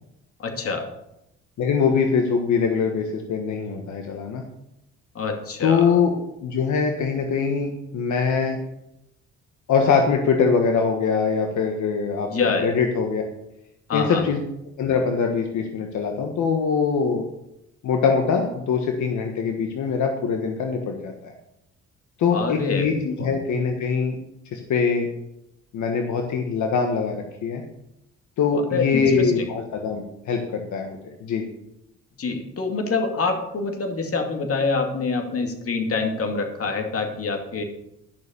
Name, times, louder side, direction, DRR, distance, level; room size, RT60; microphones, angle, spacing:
voice 1, 0.4-0.9 5.1-6.0 12.3-12.8 13.9-14.3 22.3-22.9 23.2-23.3 28.5-29.5 32.2-37.6, left 4 dB, 50° left, 4 dB, 2.5 m, -26 dB
voice 2, 1.6-4.4 5.6-6.1 6.4-8.6 9.7-13.2 13.9-14.4 14.8-17.3 17.8-21.3 22.2-24.1 24.5-25.1 25.7-27.6 28.4-31.4, left 5 dB, 75° left, 3 dB, 1.5 m, -23 dB
12.0 x 6.6 x 6.9 m, 0.84 s
cardioid pair, 90°, 30 cm